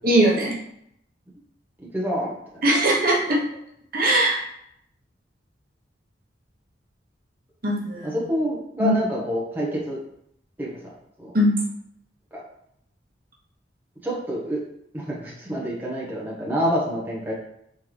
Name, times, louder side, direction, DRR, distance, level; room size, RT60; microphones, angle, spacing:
voice 1, 0.0-0.6 2.6-3.4 3.9-4.4 7.6-8.1 8.8-8.9 11.3-11.5, right 1 dB, 50° right, -3 dB, 1.1 m, -20 dB
voice 2, 1.9-2.3 8.0-10.0 10.6-10.7 11.2-11.3 14.0-14.6 14.9-17.3, equal, 10° right, -6 dB, 1.0 m, -27 dB
4.2 x 3.8 x 3.3 m, 0.74 s
head